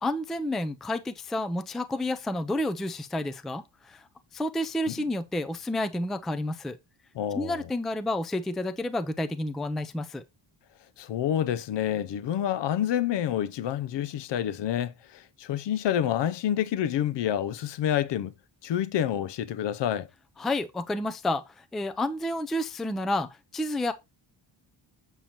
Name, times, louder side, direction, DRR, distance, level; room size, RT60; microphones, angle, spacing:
voice 1, 0.0-4.0 4.3-6.8 7.3-10.2 20.4-23.9, left 1 dB, ahead, 0.3 m, -30 dB
voice 2, 7.1-7.7 11.0-18.3 18.6-20.1, left 10 dB, 65° left, 0.6 m, -28 dB
7.4 x 6.9 x 2.8 m
wide cardioid pair, 180°, 46 cm